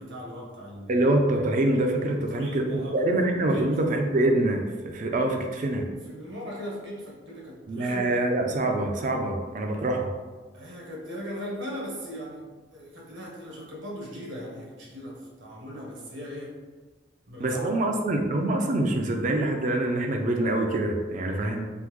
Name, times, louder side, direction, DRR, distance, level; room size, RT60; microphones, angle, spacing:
voice 1, 0.0-1.0 2.3-3.1 3.5-3.7 6.1-8.2 10.5-16.5 17.3-18.0, equal, 75° right, -3 dB, 0.9 m, -38 dB
voice 2, 0.9-2.7 2.9-5.9 7.7-10.1 17.4-21.7, right 1 dB, 40° right, 3 dB, 0.4 m, -25 dB
3.5 x 2.1 x 3.0 m, 1.3 s
head